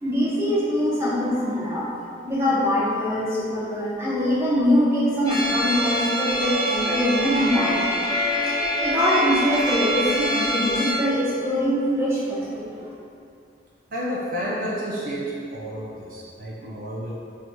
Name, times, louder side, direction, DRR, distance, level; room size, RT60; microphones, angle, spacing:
voice 1, 0.0-1.9 2.2-8.0 8.8-12.9, equal, 15° right, -8 dB, 0.7 m, -23 dB
sound 1, 5.2-10.9, equal, 20° left, 0.9 m, -25 dB
voice 2, 13.9-17.1, equal, 50° right, -6 dB, 0.5 m, -30 dB
6.1 x 2.7 x 2.2 m, 2.4 s
head